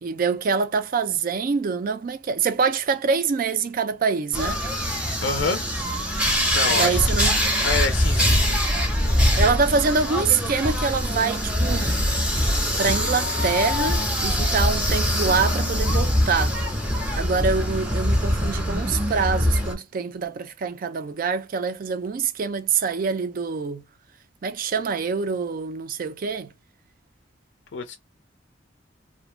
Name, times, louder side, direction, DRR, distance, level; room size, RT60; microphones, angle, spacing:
voice 1, 0.0-4.6 6.7-7.4 9.4-11.9 12.8-16.6 17.1-23.8 24.4-26.5, right 5 dB, 45° right, 0.4 m, -25 dB
sound 1, 4.3-19.7, equal, 5° right, 0.6 m, -23 dB
voice 2, 5.2-5.6 6.5-7.0 7.6-8.6 27.7-28.0, left 4 dB, 65° left, 0.4 m, -27 dB
2.5 x 2.1 x 3.0 m
head